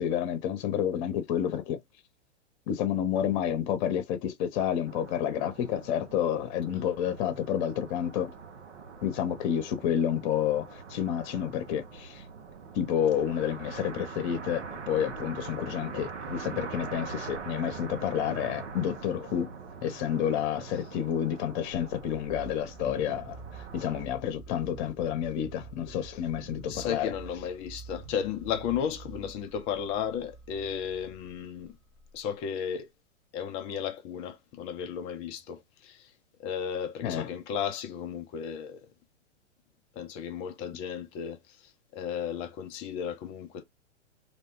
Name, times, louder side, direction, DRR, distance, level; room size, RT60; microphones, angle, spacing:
voice 1, 0.0-1.8 2.7-8.3 9.0-12.2 12.7-19.5 19.8-23.4 23.7-27.1 37.0-37.3, left 9 dB, 40° left, 0.8 m, -30 dB
sound 1, 4.9-24.0, right 5 dB, 80° right, 0.9 m, -43 dB
sound 2, 21.7-32.6, right 5 dB, 25° right, 0.7 m, -48 dB
voice 2, 26.7-31.8 32.1-32.9 33.3-36.1 36.4-38.8 40.0-43.6, left 8 dB, 20° left, 0.3 m, -34 dB
2.5 x 2.2 x 3.6 m
hypercardioid pair, 115°, 36 cm